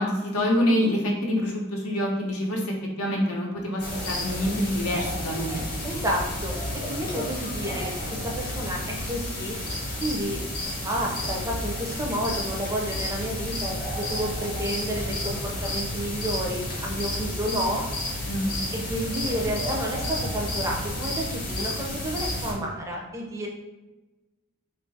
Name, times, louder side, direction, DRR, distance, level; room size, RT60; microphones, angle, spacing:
voice 1, 0.0-5.6 18.3-18.5, equal, 80° left, 0 dB, 0.7 m, -26 dB
sound 1, 3.8-22.5, left 1 dB, 40° left, 0.8 m, -31 dB
voice 2, 5.8-9.6 10.0-17.8 18.7-23.5, right 1 dB, 15° right, -1 dB, 0.4 m, -31 dB
2.8 x 2.4 x 3.9 m, 1.1 s
head